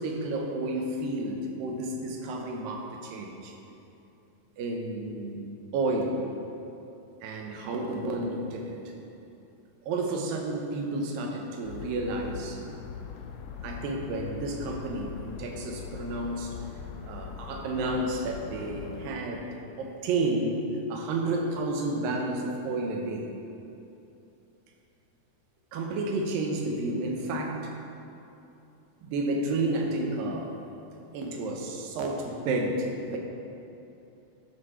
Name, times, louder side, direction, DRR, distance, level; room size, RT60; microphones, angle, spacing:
voice 1, 0.0-3.5 4.6-5.4 5.7-6.2 7.2-8.8 9.9-12.6 13.6-16.6 17.1-20.6 20.9-23.3 25.7-27.6 29.0-30.6 31.1-33.2, right 2 dB, 85° right, 1 dB, 2.5 m, -31 dB
sound 1, 11.6-19.1, left 7 dB, 90° left, 1.7 m, -41 dB
12.0 x 4.3 x 4.4 m, 2.8 s
omnidirectional pair, 4.0 m